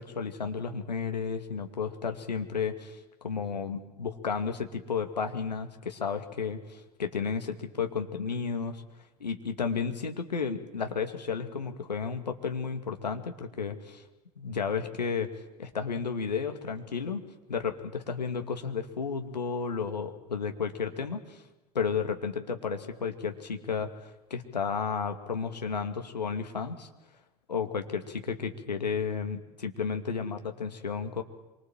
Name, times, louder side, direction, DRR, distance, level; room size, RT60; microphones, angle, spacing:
voice 1, 0.0-8.8 9.2-14.0 14.4-15.3 15.6-17.2 17.5-21.4 21.7-26.9 27.5-31.2, left 5 dB, 85° left, 5 dB, 2.5 m, -32 dB
26.0 x 24.5 x 7.6 m, 1.1 s
figure-of-eight pair, 75°, 21 cm